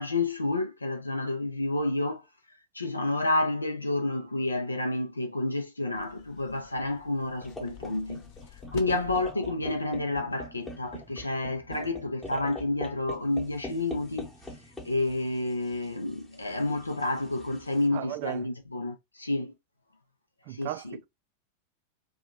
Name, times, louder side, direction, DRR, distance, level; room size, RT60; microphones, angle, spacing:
voice 1, 0.0-2.2 2.7-8.2 8.7-14.3 14.8-19.5 20.5-21.0, left 2 dB, 80° left, 0.6 m, -30 dB
sound 1, 5.9-9.3, left 12 dB, 45° left, 0.6 m, -48 dB
sound 2, 7.4-17.8, left 1 dB, 10° left, 0.9 m, -44 dB
voice 2, 17.9-18.4 20.5-21.1, right 14 dB, 50° right, 0.3 m, -36 dB
2.9 x 2.3 x 3.6 m
figure-of-eight pair, 90°, 0 cm